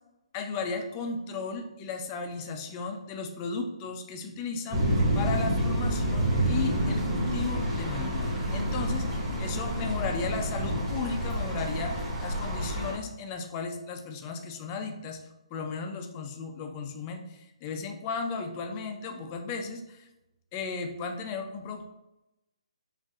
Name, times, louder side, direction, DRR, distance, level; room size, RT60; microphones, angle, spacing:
voice 1, 0.3-15.2 15.5-20.1 20.5-21.9, left 4 dB, 20° left, 4 dB, 0.3 m, -35 dB
sound 1, 4.7-12.9, right 1 dB, 25° right, 1.5 m, -28 dB
5.1 x 2.4 x 2.4 m, 0.93 s
hypercardioid pair, 165°, 4 cm